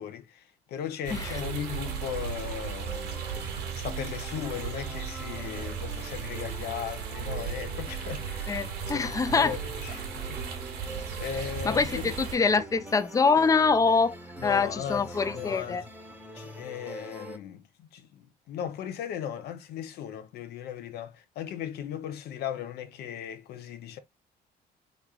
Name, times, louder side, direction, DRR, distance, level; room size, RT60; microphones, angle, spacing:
voice 1, 0.0-3.2 3.7-8.6 8.8-10.4 11.2-12.1 14.4-15.8 16.3-24.0, left 9 dB, 70° left, 0.8 m, -37 dB
sound 1, 1.0-12.4, right 7 dB, 85° right, 1.1 m, -36 dB
voice 2, 1.1-1.4 8.5-9.6 11.6-14.2 14.4-15.8, left 4 dB, 20° left, 0.4 m, -25 dB
sound 2, 1.4-17.4, right 1 dB, 10° right, 0.8 m, -43 dB
3.7 x 3.1 x 2.3 m
cardioid pair, 110°, 17 cm